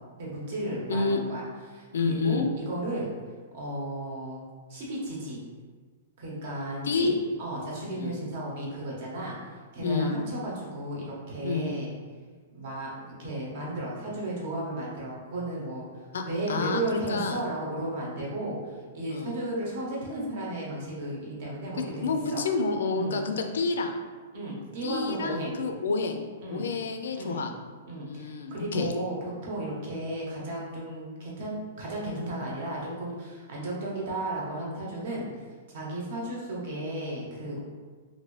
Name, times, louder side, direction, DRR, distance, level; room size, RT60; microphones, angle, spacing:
voice 1, 0.2-1.4 1.7-3.1 3.5-4.4 4.7-5.4 6.2-7.1 7.4-9.4 9.7-11.9 12.5-15.9 16.3-22.0 22.3-22.4 22.9-23.2 24.3-25.6 26.4-26.6 27.1-27.5 27.8-35.3 35.7-37.6, right 1 dB, 45° right, -4 dB, 0.9 m, -34 dB
voice 2, 0.9-1.2 1.9-2.5 6.8-7.1 7.9-8.2 9.8-10.2 11.4-11.7 16.1-17.4 19.1-19.3 22.0-24.0 24.8-26.2 26.5-27.5 28.0-28.9, left 4 dB, 85° left, 5 dB, 0.4 m, -29 dB
2.9 x 2.6 x 3.1 m, 1.5 s
hypercardioid pair, 170°, 0 cm